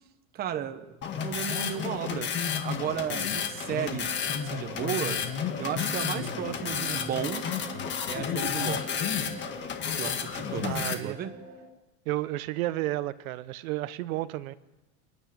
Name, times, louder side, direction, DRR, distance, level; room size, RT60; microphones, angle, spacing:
voice 1, 0.3-2.3 2.6-4.1 4.4-5.2 5.6-7.4 8.1-9.0 10.0-11.3, right 9 dB, 20° right, 8 dB, 1.0 m, -34 dB
sound 1, 1.0-10.9, left 7 dB, 25° left, 1.6 m, -31 dB
sound 2, 2.7-11.6, right 1 dB, 45° right, 4.6 m, -45 dB
voice 2, 10.6-11.2 12.1-14.5, right 16 dB, 65° right, 15 dB, 1.0 m, -32 dB
29.5 x 10.5 x 8.7 m, 1.0 s
supercardioid pair, 165°, 45 cm